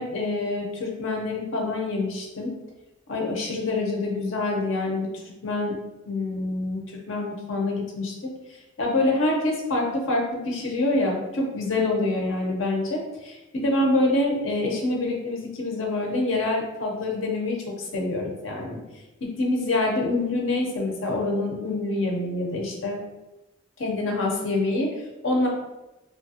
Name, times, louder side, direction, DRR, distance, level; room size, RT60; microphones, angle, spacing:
voice 1, 0.0-2.5 3.1-5.8 6.1-6.8 7.1-8.1 8.8-18.8 19.4-23.0 23.8-25.5, left 2 dB, 80° left, -1 dB, 0.7 m, -26 dB
3.0 x 2.3 x 2.7 m, 1.0 s
head